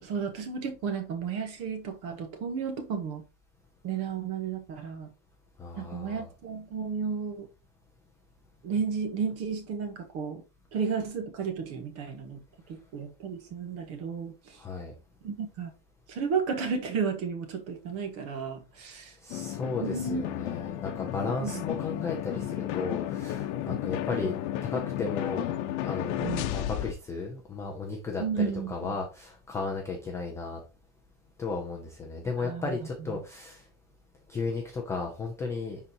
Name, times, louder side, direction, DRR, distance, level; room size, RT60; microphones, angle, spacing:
voice 1, 0.0-3.2 3.8-5.1 5.7-7.5 8.6-10.4 10.7-14.6 15.2-15.7 16.1-19.2 19.8-20.2 21.4-21.6 23.7-23.8 26.2-26.5 28.2-29.0 32.4-33.2, right 6 dB, 35° right, 1.0 m, -33 dB
voice 2, 5.6-6.3 14.6-14.9 19.2-24.3 24.6-25.5 25.8-30.6 31.4-33.6 34.3-35.8, left 4 dB, 10° left, 0.3 m, -34 dB
sound 1, 19.3-26.9, left 12 dB, 60° left, 0.9 m, -33 dB
9.9 x 4.0 x 2.8 m
supercardioid pair, 165°, 39 cm